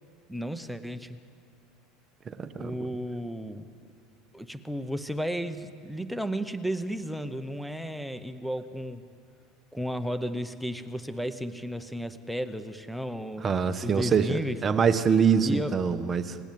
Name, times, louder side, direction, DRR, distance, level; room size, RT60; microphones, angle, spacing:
voice 1, 0.3-1.2 2.6-3.6 4.3-9.0 9.7-13.5 13.8-14.6 15.4-15.8, equal, ahead, 9 dB, 0.9 m, -33 dB
voice 2, 2.2-2.8 13.4-16.4, right 6 dB, 25° right, 9 dB, 1.2 m, -25 dB
29.5 x 18.5 x 9.4 m, 2.4 s
supercardioid pair, 140°, 0 cm